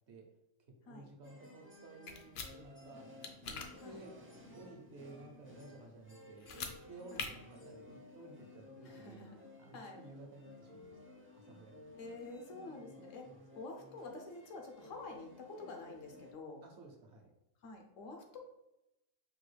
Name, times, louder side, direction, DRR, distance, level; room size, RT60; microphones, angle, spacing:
voice 1, 0.8-3.1 3.4-4.2 4.5-9.2 9.6-10.9 11.3-12.1 12.6-12.9 13.2-13.3 16.6-17.3, right 2 dB, 65° right, 2 dB, 1.0 m, -55 dB
sound 1, 1.2-16.3, left 2 dB, 15° right, 0.5 m, -56 dB
sound 2, 2.1-2.5 3.2-3.7 6.4-6.7 7.1-7.3, left 5 dB, 65° left, 0.7 m, -41 dB
voice 2, 8.8-9.4 9.7-10.0 11.9-13.3 13.5-16.6 17.6-18.4, left 3 dB, 80° left, 3 dB, 1.1 m, -48 dB
5.3 x 2.4 x 3.2 m, 0.89 s
omnidirectional pair, 1.3 m